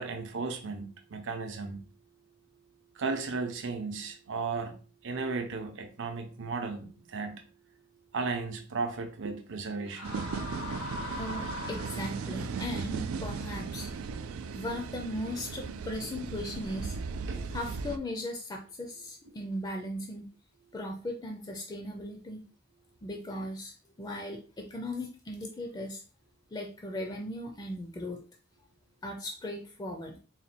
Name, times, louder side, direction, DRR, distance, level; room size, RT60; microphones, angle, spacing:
voice 1, 0.0-1.8 3.0-4.8 5.0-7.4 8.1-10.2 17.3-17.5, right 4 dB, 60° right, 0.7 m, -35 dB
sound 1, 9.9-12.5, left 2 dB, 80° left, 1.2 m, -40 dB
sound 2, 10.0-18.0, right 5 dB, 85° right, 0.4 m, -37 dB
voice 2, 11.2-13.9 14.5-17.0 17.5-20.3 20.7-22.4 23.0-26.0 26.5-28.2 29.0-30.2, left 1 dB, 20° left, 0.5 m, -38 dB
4.1 x 2.2 x 4.2 m
head